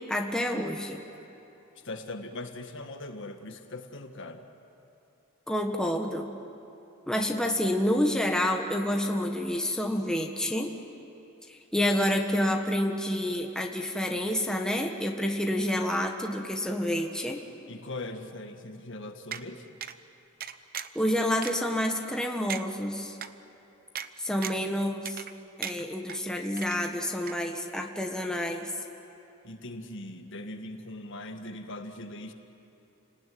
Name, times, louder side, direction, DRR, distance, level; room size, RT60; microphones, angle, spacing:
voice 1, 0.1-1.0 5.5-6.3 7.1-10.7 11.5-17.4 20.9-23.2 24.2-25.2 25.6-28.7, left 1 dB, 5° left, 2 dB, 1.5 m, -28 dB
voice 2, 1.7-4.4 17.7-19.8 29.4-32.3, left 2 dB, 60° left, 6 dB, 1.7 m, -40 dB
sound 1, 19.3-19.4 19.8-20.0 20.4-21.0 21.4-21.5 22.0-22.1 22.5-22.6 23.2-23.3 24.0-24.1 24.4-24.7 25.1-25.4 25.6-26.2 26.6-27.0 27.3-27.4, right 9 dB, 45° right, 0.8 m, -36 dB
29.5 x 19.0 x 9.4 m, 3.0 s
head